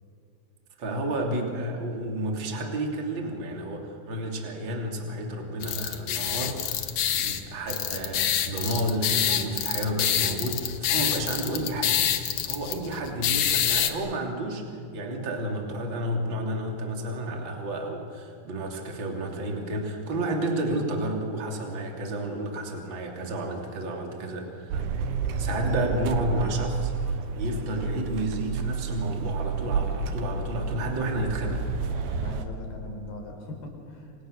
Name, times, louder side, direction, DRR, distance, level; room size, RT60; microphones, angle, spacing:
voice 1, 0.8-12.0 12.4-24.9 25.4-31.7, right 1 dB, 30° right, 1 dB, 3.5 m, -31 dB
sound 1, 5.6-13.9, left 10 dB, 65° left, 2.6 m, -27 dB
sound 2, 24.7-32.4, right 5 dB, 85° right, 3.4 m, -30 dB
voice 2, 31.9-34.2, left 1 dB, 80° left, 2 dB, 6.5 m, -40 dB
29.0 x 27.5 x 6.7 m, 2.4 s
omnidirectional pair, 4.4 m